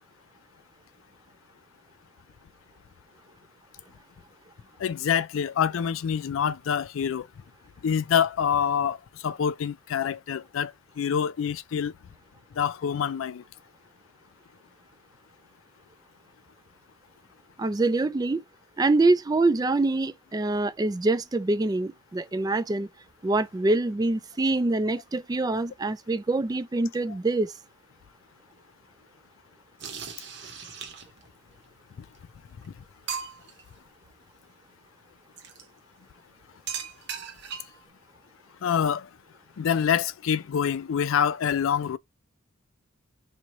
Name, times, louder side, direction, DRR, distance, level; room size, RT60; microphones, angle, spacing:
voice 1, 4.8-7.3 7.8-9.0 9.2-11.9 12.6-13.4 32.6-32.7 38.6-39.1 39.6-42.0, left 8 dB, 75° left, 0.4 m, -26 dB
voice 2, 17.6-18.4 18.8-22.9 23.2-27.5, right 2 dB, 20° right, 0.3 m, -25 dB
sound 1, 29.8-31.3 32.2-32.3 32.6-32.7 33.1-33.6 35.4-35.6 36.7-37.8, right 6 dB, 55° right, 0.9 m, -37 dB
3.1 x 2.8 x 3.8 m
head